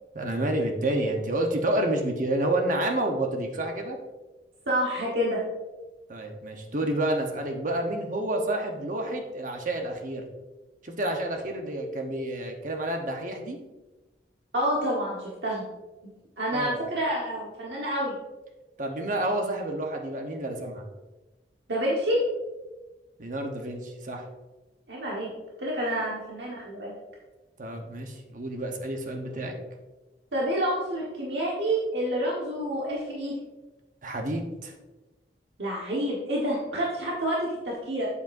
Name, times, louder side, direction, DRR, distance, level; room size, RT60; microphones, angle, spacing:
voice 1, 0.1-4.0 6.1-10.2 10.8-13.6 16.5-16.8 18.8-20.8 23.2-24.3 27.6-29.5 34.0-34.7, right 1 dB, 45° right, 3 dB, 1.0 m, -29 dB
voice 2, 4.7-5.4 14.5-15.7 16.4-18.2 21.7-22.2 24.9-25.3 25.6-26.9 30.3-33.3 35.6-38.1, equal, 75° right, -4 dB, 1.4 m, -28 dB
8.1 x 7.7 x 2.6 m, 1.1 s
head